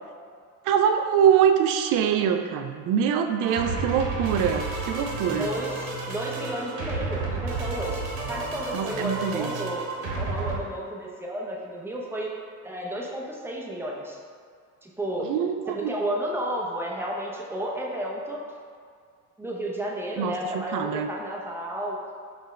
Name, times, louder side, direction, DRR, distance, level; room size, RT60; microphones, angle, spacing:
voice 1, 0.7-5.5 8.7-9.5 15.3-15.9 20.2-21.1, right 8 dB, 45° right, 6 dB, 0.4 m, -24 dB
sound 1, 3.4-10.6, right 3 dB, 60° right, 1.0 m, -31 dB
voice 2, 5.3-8.0 8.3-9.9 10.2-12.3 12.6-14.2 14.8-15.3 15.7-18.4 19.4-22.0, right 1 dB, 5° right, -3 dB, 0.6 m, -32 dB
5.4 x 2.5 x 3.2 m, 2.1 s
hypercardioid pair, 70°, 47 cm